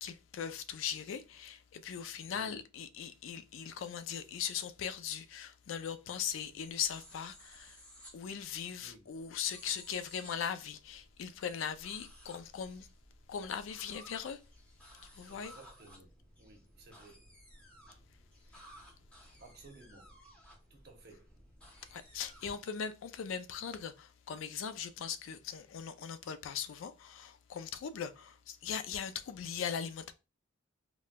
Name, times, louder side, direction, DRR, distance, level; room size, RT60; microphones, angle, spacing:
voice 1, 0.0-7.8 8.1-12.9 13.3-14.4 15.1-15.5 21.9-30.1, left 7 dB, 70° left, 0.3 m, -39 dB
voice 2, 2.3-2.6 8.8-9.1 15.3-16.1 16.4-17.3 19.4-20.2 20.7-21.4, right 3 dB, 50° right, 0.8 m, -57 dB
sound 1, 6.5-22.6, equal, 5° left, 0.7 m, -57 dB
4.1 x 2.1 x 2.2 m
head